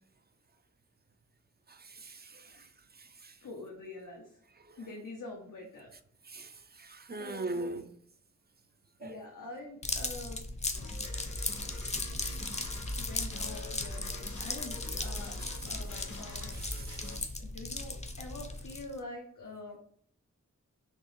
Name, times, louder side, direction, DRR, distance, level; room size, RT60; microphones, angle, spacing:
voice 1, 1.7-2.6 3.0-3.3 6.3-7.9 9.0-9.1 16.6-17.1, right 2 dB, 30° right, 0.4 m, -41 dB
voice 2, 3.4-4.4 4.8-5.9 6.6-6.7 7.2-7.8 9.0-10.4 13.0-15.3 15.7-16.5 17.3-19.8, left 2 dB, 90° left, 0.7 m, -46 dB
sound 1, 9.8-19.0, left 2 dB, 20° left, 0.5 m, -37 dB
sound 2, 10.7-17.2, left 1 dB, 70° left, 1.0 m, -43 dB
4.4 x 2.9 x 3.0 m
wide cardioid pair, 55°, 31 cm